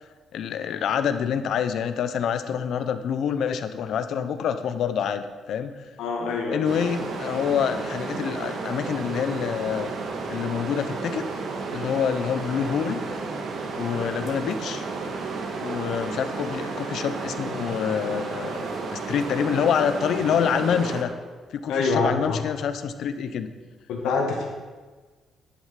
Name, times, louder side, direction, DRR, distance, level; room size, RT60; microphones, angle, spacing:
voice 1, 0.3-5.7 6.5-9.9 10.3-11.2 11.7-13.0 13.8-14.8 15.6-21.1 21.5-23.5, left 7 dB, 70° left, 10 dB, 0.8 m, -26 dB
voice 2, 6.0-6.7 14.3-14.4 21.7-22.4 23.9-24.5, left 4 dB, 90° left, 1 dB, 2.1 m, -25 dB
sound 1, 6.6-21.0, right 4 dB, 65° right, 1.7 m, -32 dB
10.5 x 8.1 x 5.9 m, 1.4 s
cardioid pair, 90°, 0 cm